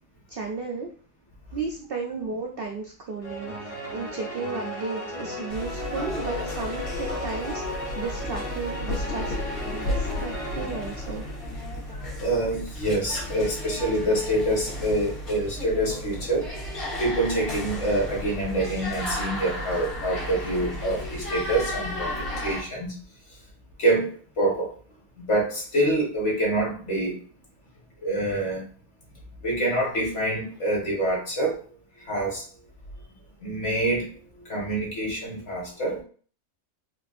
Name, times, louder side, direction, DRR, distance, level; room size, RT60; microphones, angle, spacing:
voice 1, 0.3-0.9 1.5-3.5 3.9-9.3 9.7-11.2, right 4 dB, 65° right, 1 dB, 0.5 m, -34 dB
sound 1, 3.2-11.8, left 1 dB, 25° left, 0.9 m, -35 dB
sound 2, 5.5-22.6, left 1 dB, 85° left, 2.0 m, -33 dB
voice 2, 11.9-16.5 17.0-23.0 23.8-24.7 25.2-27.2 28.0-28.6 29.4-31.6 32.0-32.4 33.4-36.0, right 1 dB, 55° left, -3 dB, 1.8 m, -26 dB
5.0 x 2.5 x 2.5 m, 0.42 s
omnidirectional pair, 1.5 m